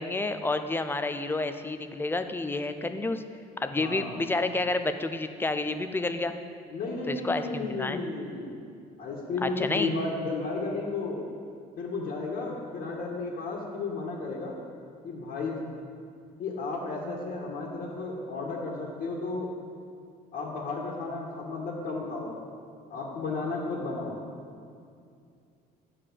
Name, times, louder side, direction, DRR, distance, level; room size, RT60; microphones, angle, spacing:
voice 1, 0.0-3.2 3.6-6.3 7.1-8.0 9.4-9.9, left 2 dB, 15° left, 9 dB, 0.5 m, -30 dB
voice 2, 3.7-4.2 6.7-8.6 9.0-11.2 11.8-14.5 15.0-15.6 16.4-19.5 20.3-22.4 22.9-24.2, left 3 dB, 60° left, -4 dB, 1.7 m, -33 dB
9.6 x 4.8 x 7.6 m, 2.4 s
cardioid pair, 110°, 17 cm